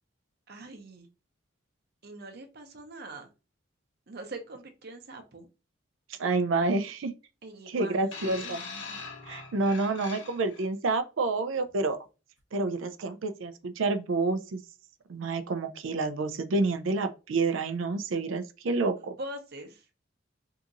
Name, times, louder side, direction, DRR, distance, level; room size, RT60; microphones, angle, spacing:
voice 1, 0.5-1.1 2.0-3.3 4.1-5.5 7.4-8.1 8.4-9.0 9.7-9.8 19.0-19.9, right 2 dB, 55° right, 0.7 m, -43 dB
voice 2, 6.2-7.1 7.7-8.6 9.3-12.0 12.5-14.6 15.1-19.1, right 3 dB, 90° right, 0.5 m, -28 dB
sound 1, 8.1-10.7 11.6-11.7, left 4 dB, 75° left, 1.0 m, -42 dB
2.8 x 2.5 x 3.7 m
head